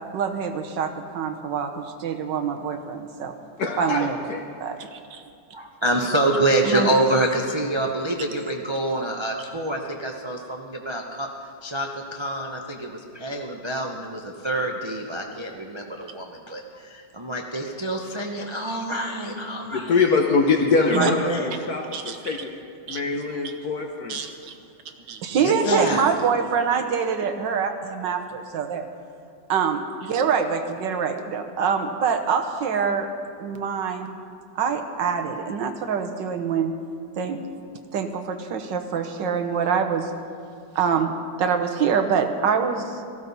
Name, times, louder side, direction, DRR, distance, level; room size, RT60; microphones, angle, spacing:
voice 1, 0.1-3.3 3.8-4.3 4.6-5.2 6.6-6.9 20.9-21.1 21.9-22.4 22.9-23.0 24.1-24.5 25.1-28.8 29.5-33.1 33.4-34.1 34.6-36.7 37.2-37.4 37.9-40.1 40.7-43.0, right 6 dB, 80° right, 6 dB, 1.6 m, -25 dB
voice 2, 3.6-4.4 19.6-22.6 22.9-24.2, left 4 dB, 60° left, 2 dB, 1.4 m, -23 dB
voice 3, 5.5-11.3 11.6-20.0 20.8-21.5 23.1-23.2 25.3-26.1, right 1 dB, 30° right, 1 dB, 0.5 m, -26 dB
18.0 x 14.5 x 4.1 m, 2.3 s
omnidirectional pair, 2.0 m